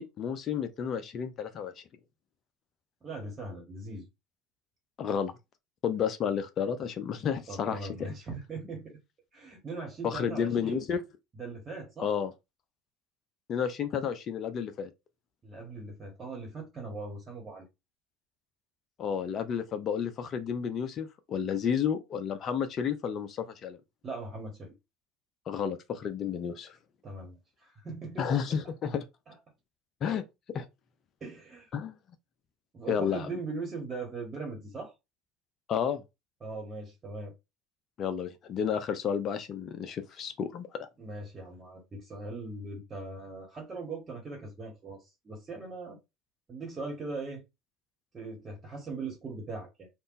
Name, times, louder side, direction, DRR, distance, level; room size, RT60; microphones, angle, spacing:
voice 1, 0.0-1.7 5.0-5.3 5.8-8.1 10.0-11.0 12.0-12.3 13.5-14.9 19.0-23.8 25.5-26.7 28.2-29.0 30.0-30.2 30.5-30.7 31.7-31.9 32.9-33.3 35.7-36.0 38.0-40.9, left 7 dB, 40° left, 0.5 m, -31 dB
voice 2, 3.0-4.1 7.5-9.0 9.3-10.8 11.3-12.1 15.4-17.6 21.6-21.7 24.0-24.7 27.0-28.3 28.6-28.7 29.3-29.4 31.2-31.7 32.7-34.9 36.4-37.3 41.0-46.0 46.5-47.4 48.1-49.9, right 3 dB, 30° right, 1.4 m, -40 dB
3.5 x 2.5 x 2.6 m
figure-of-eight pair, 65°, 0 cm